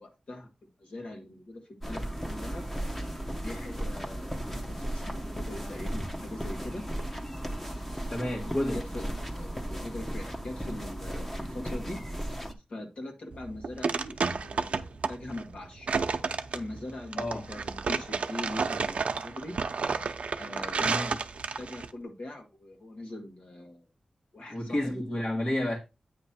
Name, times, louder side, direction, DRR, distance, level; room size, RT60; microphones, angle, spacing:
voice 1, 0.0-2.7 3.4-6.8 8.7-9.1 9.3-12.0 12.7-15.9 16.5-19.6 20.4-21.0 21.3-23.9 24.3-25.0, left 1 dB, 65° left, 1.6 m, -42 dB
sound 1, 1.8-12.5, equal, 10° left, 1.2 m, -35 dB
voice 2, 8.1-8.8 17.2-17.5 20.8-21.1 24.5-25.8, left 1 dB, 40° left, 1.6 m, -30 dB
sound 2, 13.3-21.9, right 5 dB, 80° right, 0.7 m, -31 dB
8.9 x 3.0 x 5.7 m
wide cardioid pair, 75°, 2 cm